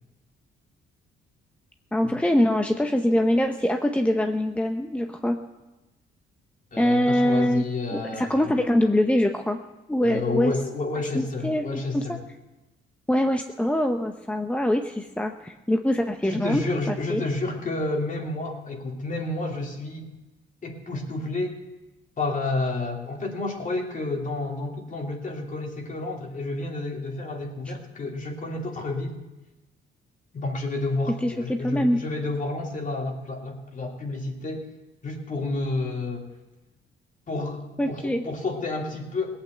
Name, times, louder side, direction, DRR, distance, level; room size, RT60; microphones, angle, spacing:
voice 1, 1.9-5.4 6.8-7.6 7.9-9.6 9.9-10.5 11.1-12.2 13.1-16.6 16.9-17.2 31.2-32.0 37.8-38.2, left 1 dB, 5° left, 5 dB, 0.8 m, -23 dB
voice 2, 6.7-8.5 10.0-12.2 16.2-20.1 20.6-21.6 22.2-29.2 30.3-34.7 35.0-36.3 37.3-39.4, left 2 dB, 40° left, 1 dB, 2.9 m, -30 dB
18.5 x 8.6 x 7.9 m, 1.1 s
cardioid pair, 90°, 20 cm